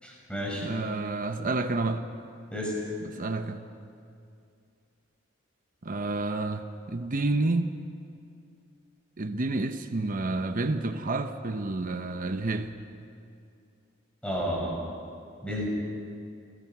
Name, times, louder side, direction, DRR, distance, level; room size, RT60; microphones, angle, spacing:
voice 1, 0.0-0.6 2.5-2.8 14.2-14.7 15.4-15.7, equal, 5° left, -3 dB, 6.1 m, -31 dB
voice 2, 0.6-2.0 3.1-3.7 5.8-7.7 9.2-12.7, right 2 dB, 45° right, 7 dB, 0.8 m, -29 dB
27.5 x 17.0 x 6.0 m, 2.5 s
head